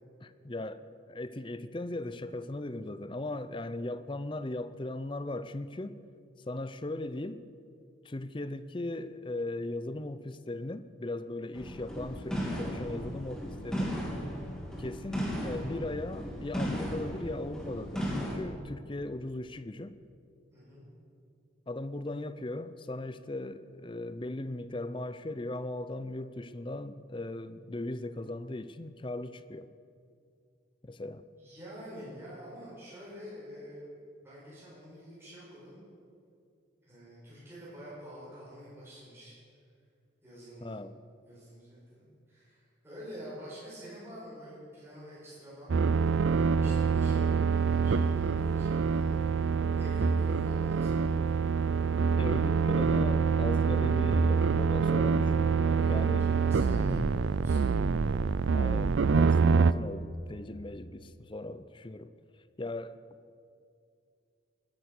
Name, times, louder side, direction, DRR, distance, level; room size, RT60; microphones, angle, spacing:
voice 1, 0.2-6.0 6.5-7.4 8.0-14.0 14.8-20.0 21.7-29.7 30.8-31.3 40.6-40.9 52.2-56.3 56.7-57.1 58.5-62.1 62.6-63.0, left 2 dB, 25° left, 0.5 m, -38 dB
sound 1, 11.5-18.3, equal, 5° left, 2.7 m, -36 dB
voice 2, 20.5-20.9 31.3-33.9 34.2-35.8 36.8-39.3 40.2-40.8 41.2-45.7 46.3-49.2 49.8-51.1 55.7-57.7, equal, 10° right, 5.1 m, -47 dB
sound 2, 45.7-59.7, right 5 dB, 70° right, 0.4 m, -26 dB
19.5 x 10.5 x 6.7 m
head